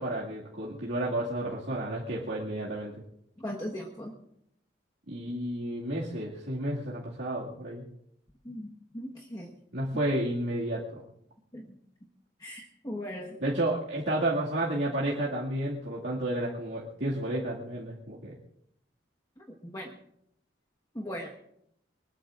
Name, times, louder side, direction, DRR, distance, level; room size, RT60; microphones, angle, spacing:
voice 1, 0.0-2.9 5.1-7.8 9.7-11.0 13.4-18.4, right 1 dB, 65° right, -6 dB, 2.2 m, -31 dB
voice 2, 3.4-4.1 8.4-8.7 8.9-9.5 11.5-11.6 12.4-13.4 19.6-19.9 20.9-21.3, equal, 20° left, -2 dB, 1.4 m, -38 dB
24.5 x 20.0 x 2.5 m, 0.75 s
head